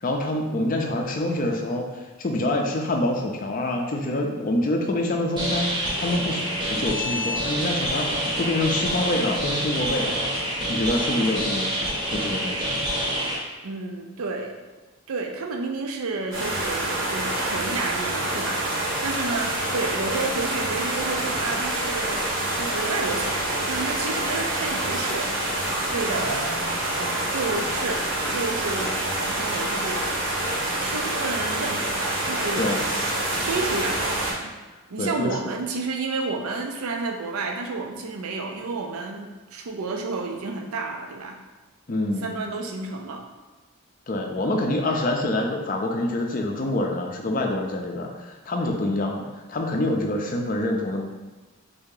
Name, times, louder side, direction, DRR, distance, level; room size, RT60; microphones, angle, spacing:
voice 1, 0.0-5.7 6.0-10.2 10.7-12.7 32.6-32.8 35.0-35.4 41.9-42.3 44.1-51.0, left 1 dB, 40° left, 2 dB, 0.4 m, -26 dB
sound 1, 5.4-13.4, equal, 20° right, 0.7 m, -27 dB
voice 2, 13.6-14.5 15.1-26.7 27.0-30.0 30.8-32.7 33.2-34.5 34.9-41.4 42.2-43.2, right 3 dB, 85° right, 3 dB, 0.5 m, -31 dB
sound 2, 16.3-34.3, right 1 dB, 60° right, 0.9 m, -27 dB
3.4 x 2.7 x 3.8 m, 1.2 s
head